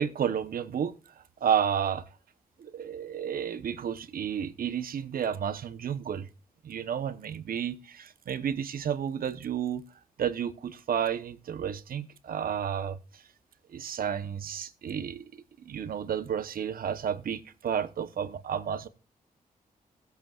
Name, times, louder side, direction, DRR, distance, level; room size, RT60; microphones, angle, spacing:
voice 1, 0.0-2.0 2.6-6.3 6.6-9.8 10.2-13.2 13.7-15.2 15.6-18.9, right 8 dB, 75° right, 0.9 m, -31 dB
17.0 x 8.2 x 2.4 m
cardioid pair, 70°, 15 cm